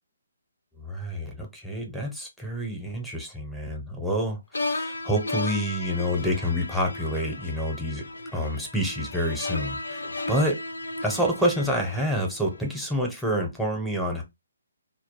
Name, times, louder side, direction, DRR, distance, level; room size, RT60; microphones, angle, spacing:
voice 1, 0.8-8.1 8.3-10.0 10.3-10.6 11.0-14.2, equal, ahead, 0.6 m, -28 dB
sound 1, 4.5-12.7, left 2 dB, 90° left, 0.4 m, -34 dB
2.2 x 2.0 x 3.0 m
hypercardioid pair, 155°, 0 cm